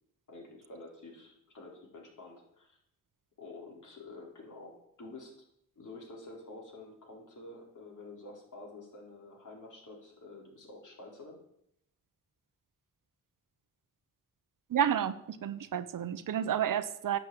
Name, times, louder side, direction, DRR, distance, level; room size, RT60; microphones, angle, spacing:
voice 1, 0.3-2.8 3.4-5.3 5.8-11.4, left 2 dB, 60° left, -1 dB, 4.4 m, -49 dB
voice 2, 14.7-17.2, right 9 dB, 70° right, 13 dB, 0.9 m, -30 dB
11.0 x 6.2 x 8.9 m, 0.76 s
cardioid pair, 75°, 34 cm